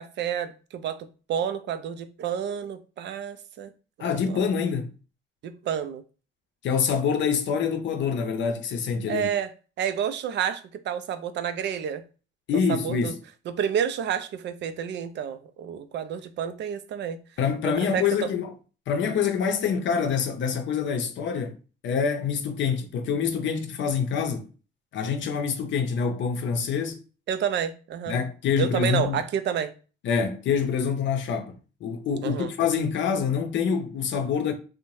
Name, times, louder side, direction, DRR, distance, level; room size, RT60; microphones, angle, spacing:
voice 1, 0.0-3.7 4.0-4.4 5.4-6.0 9.1-9.5 9.8-12.0 12.7-13.1 13.5-17.2 17.6-18.3 27.3-28.2 28.6-29.7 32.2-32.5, right 8 dB, 65° right, 0.4 m, -30 dB
voice 2, 4.0-4.9 6.6-9.3 12.5-13.2 17.4-18.5 18.9-21.6 21.8-24.5 24.9-27.0 28.1-29.2 30.0-34.5, left 6 dB, 70° left, 0.6 m, -26 dB
2.6 x 2.1 x 3.0 m
cardioid pair, 90°, 20 cm